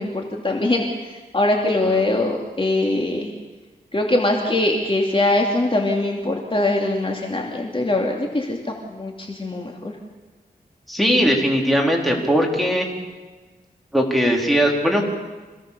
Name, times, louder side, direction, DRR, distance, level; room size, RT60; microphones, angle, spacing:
voice 1, 0.0-3.3 3.9-9.9, left 2 dB, 35° left, 0 dB, 2.7 m, -22 dB
voice 2, 10.9-12.9 13.9-15.0, equal, ahead, -1 dB, 4.3 m, -19 dB
26.5 x 17.0 x 6.9 m, 1.3 s
wide cardioid pair, 75°, 16 cm